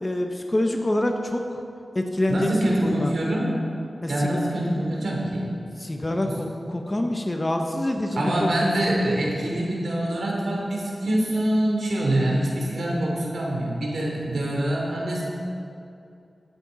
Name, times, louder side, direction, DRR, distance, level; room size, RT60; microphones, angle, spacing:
voice 1, 0.0-1.4 1.9-3.1 4.0-4.4 5.8-8.7, left 1 dB, 25° left, 3 dB, 1.1 m, -26 dB
voice 2, 2.3-3.5 4.1-5.4 6.2-6.3 8.1-15.3, right 1 dB, 80° right, -3 dB, 3.2 m, -25 dB
17.0 x 9.0 x 4.1 m, 2.5 s
wide cardioid pair, 65°, 0 cm